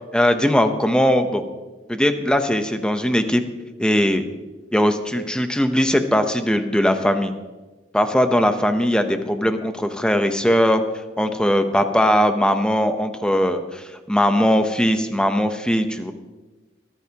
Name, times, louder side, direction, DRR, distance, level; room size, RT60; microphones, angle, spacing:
voice 1, 0.1-1.4 1.9-3.4 3.8-4.2 4.7-7.3 7.9-10.8 11.2-16.1, equal, 5° left, 7 dB, 0.8 m, -19 dB
21.5 x 13.0 x 3.0 m, 1.2 s
head